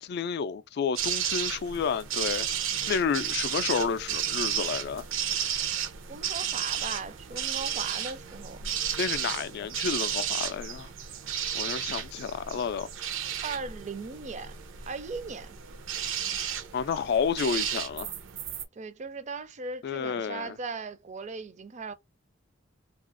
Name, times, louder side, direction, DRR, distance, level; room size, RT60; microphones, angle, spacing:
voice 1, 0.0-2.5 2.9-5.1 9.0-10.9 11.5-12.9 16.7-18.1 19.8-20.5, left 6 dB, 55° left, 0.3 m, -30 dB
sound 1, 1.0-18.6, right 9 dB, 80° right, 0.6 m, -33 dB
voice 2, 6.1-8.7 13.4-14.5 14.9-15.6 18.8-21.9, right 4 dB, 35° right, 0.4 m, -38 dB
2.8 x 2.4 x 2.5 m
head